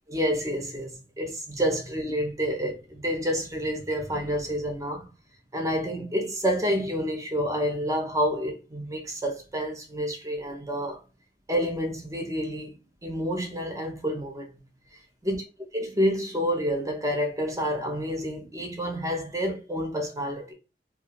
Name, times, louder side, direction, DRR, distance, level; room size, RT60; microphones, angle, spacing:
voice 1, 0.1-5.1 5.5-11.0 11.5-12.7 13.0-14.5 15.2-15.4 15.7-20.5, equal, 20° right, 0.6 m, -28 dB
2.4 x 2.3 x 3.0 m
head